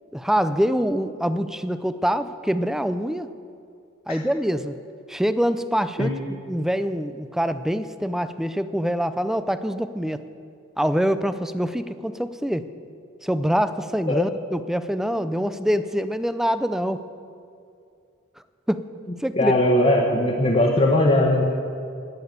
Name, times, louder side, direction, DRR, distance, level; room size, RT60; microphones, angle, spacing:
voice 1, 0.1-3.3 4.1-4.8 5.1-6.2 6.5-10.2 10.8-12.7 13.2-17.1 18.7-18.9 19.2-19.5, equal, ahead, 12 dB, 0.4 m, -25 dB
voice 2, 19.4-21.4, left 1 dB, 30° left, -2 dB, 1.3 m, -19 dB
19.0 x 6.9 x 8.1 m, 2.4 s
head